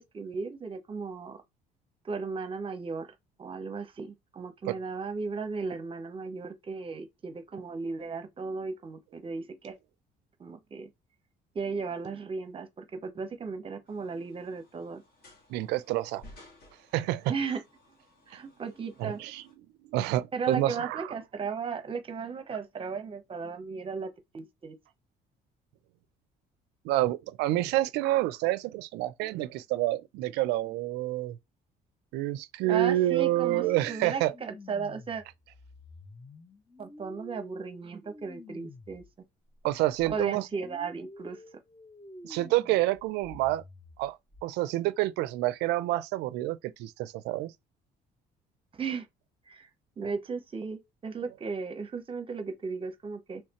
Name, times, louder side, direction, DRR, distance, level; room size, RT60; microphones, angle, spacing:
voice 1, 0.0-1.4 2.0-9.8 10.4-10.9 11.5-15.0 17.3-17.6 18.3-19.2 20.3-24.7 32.7-35.2 36.8-39.0 40.0-41.4 48.7-49.1 49.5-49.7 50.0-53.4, right 5 dB, 30° right, 0.8 m, -36 dB
sound 1, 13.9-19.5, left 1 dB, 60° left, 1.6 m, -57 dB
voice 2, 15.5-16.2 16.9-17.3 19.0-19.4 19.9-21.1 26.8-31.4 32.1-34.3 39.6-40.5 42.2-43.6 44.0-47.5, right 15 dB, 90° right, 0.4 m, -28 dB
sound 2, 33.1-39.1 39.5-44.4, left 1 dB, 15° left, 0.6 m, -49 dB
3.3 x 3.2 x 2.9 m
cardioid pair, 110°, 17 cm